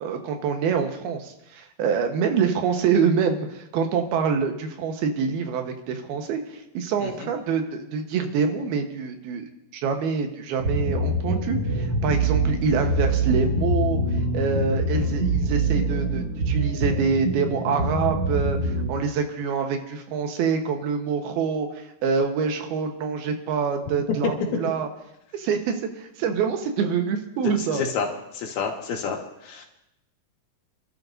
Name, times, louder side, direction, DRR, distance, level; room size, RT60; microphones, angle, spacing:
voice 1, 0.0-9.5 9.7-14.0 14.3-24.9 25.3-27.8, right 6 dB, 85° right, 5 dB, 3.2 m, -26 dB
sound 1, 10.6-18.9, right 1 dB, 40° right, 2.8 m, -24 dB
voice 2, 27.7-28.1 28.3-29.7, left 5 dB, 90° left, 0 dB, 3.7 m, -29 dB
28.5 x 12.5 x 2.7 m, 0.86 s
omnidirectional pair, 4.3 m